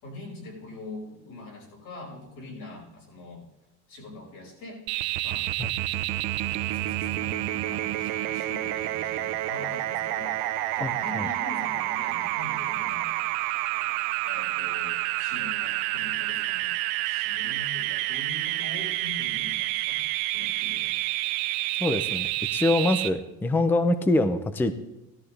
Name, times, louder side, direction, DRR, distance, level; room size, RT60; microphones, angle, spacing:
voice 1, 0.0-3.4 3.9-4.9 5.2-5.5 6.7-10.4 10.7-13.1 14.3-16.7 17.1-20.0 20.3-21.0, left 2 dB, 60° left, -3 dB, 5.9 m, -43 dB
sound 1, 4.9-23.1, right 16 dB, 80° right, 0.7 m, -29 dB
voice 2, 10.8-11.3 21.8-24.7, left 2 dB, 5° left, 10 dB, 0.5 m, -25 dB
17.0 x 12.5 x 3.3 m, 0.99 s
cardioid pair, 150°, 39 cm